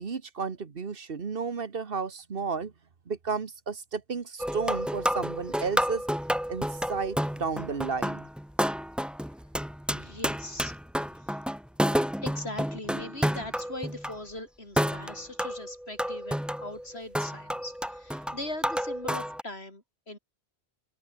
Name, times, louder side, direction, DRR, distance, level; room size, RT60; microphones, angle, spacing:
voice 1, 0.0-2.7 3.1-6.0 6.5-8.3, right 5 dB, 60° right, 1.5 m, -33 dB
sound 1, 4.4-14.2 14.8-19.4, equal, ahead, 0.7 m, -30 dB
voice 2, 9.9-10.8 11.1-11.3 12.2-20.2, left 1 dB, 75° left, 6.7 m, -40 dB
open air
omnidirectional pair, 1.1 m